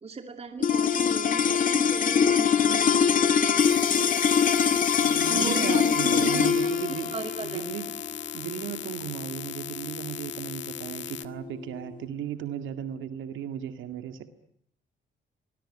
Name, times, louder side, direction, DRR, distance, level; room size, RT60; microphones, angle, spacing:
voice 1, 0.0-3.2 5.3-6.7 7.1-7.6, right 4 dB, 30° right, 6 dB, 2.5 m, -36 dB
sound 1, 0.6-11.1, left 7 dB, 45° left, 1.6 m, -24 dB
sound 2, 3.6-11.3, left 11 dB, 70° left, 1.5 m, -39 dB
voice 2, 5.0-7.2 7.4-7.9 8.3-14.3, right 9 dB, 80° right, 8 dB, 2.0 m, -35 dB
26.0 x 19.5 x 9.9 m, 0.73 s
cardioid pair, 90°, 20 cm